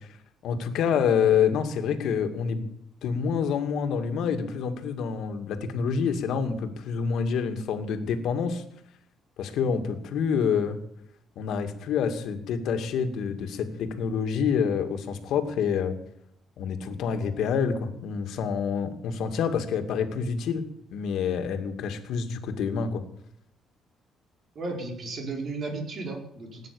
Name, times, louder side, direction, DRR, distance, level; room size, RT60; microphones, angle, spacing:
voice 1, 0.4-2.6 3.0-8.6 9.4-10.8 11.4-16.0 16.6-20.6 20.9-23.0, left 6 dB, 75° left, 7 dB, 2.4 m, -27 dB
voice 2, 24.5-26.7, right 3 dB, 45° right, 2 dB, 5.0 m, -34 dB
18.5 x 9.7 x 7.0 m, 0.72 s
cardioid pair, 135°, 0 cm